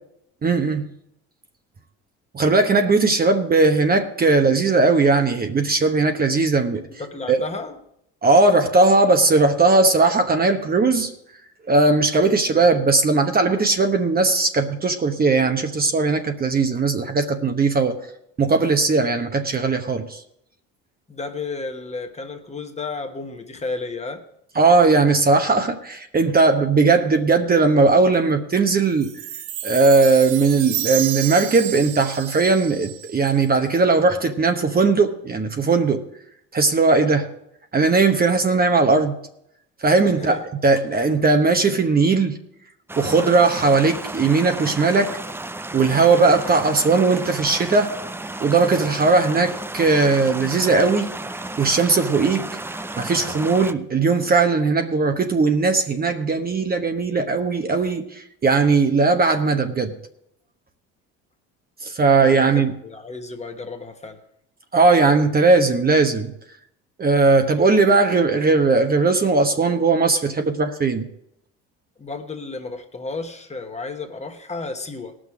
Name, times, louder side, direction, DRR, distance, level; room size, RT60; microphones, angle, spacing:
voice 1, 0.4-0.9 2.3-6.8 7.3-7.4 8.2-11.1 11.7-18.0 18.4-20.2 24.6-29.1 29.6-36.0 36.5-37.3 37.7-39.1 39.8-42.4 43.0-45.2 45.7-48.0 48.4-51.1 51.6-52.5 53.0-60.0 61.8-62.7 64.7-66.3 67.0-71.1, right 3 dB, 30° right, 1.0 m, -18 dB
voice 2, 6.9-7.8 12.2-12.7 21.1-24.2 40.1-40.4 62.2-64.2 72.0-75.2, left 3 dB, 20° left, 1.3 m, -33 dB
Chime, 29.0-33.5, right 12 dB, 85° right, 0.8 m, -30 dB
sound 1, 42.9-53.7, right 2 dB, 5° right, 0.5 m, -33 dB
18.0 x 6.3 x 4.9 m
supercardioid pair, 85°, 33 cm